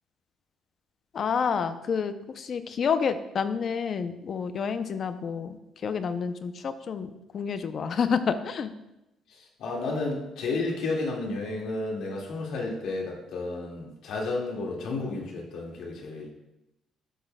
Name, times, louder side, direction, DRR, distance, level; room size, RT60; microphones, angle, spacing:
voice 1, 1.1-5.6 5.8-8.7, left 6 dB, 40° left, 10 dB, 0.5 m, -29 dB
voice 2, 9.3-16.3, left 3 dB, 65° left, -1 dB, 1.9 m, -32 dB
11.5 x 6.4 x 2.2 m, 0.91 s
cardioid pair, 160°, 0 cm